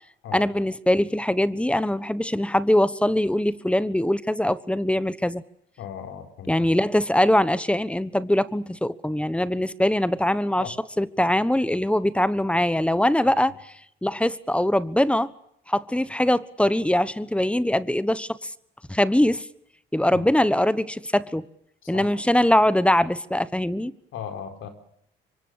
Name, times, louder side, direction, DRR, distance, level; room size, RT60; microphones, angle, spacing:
voice 1, 0.3-5.4 6.5-13.7 14.0-15.3 15.7-18.5 18.9-19.4 19.9-21.4 21.9-23.9, left 1 dB, 5° left, 1.2 m, -22 dB
voice 2, 5.8-6.7 10.6-10.7 20.1-20.3 21.8-22.1 24.1-24.7, left 8 dB, 80° left, 4.5 m, -37 dB
27.0 x 24.0 x 6.6 m
cardioid pair, 90°, 20 cm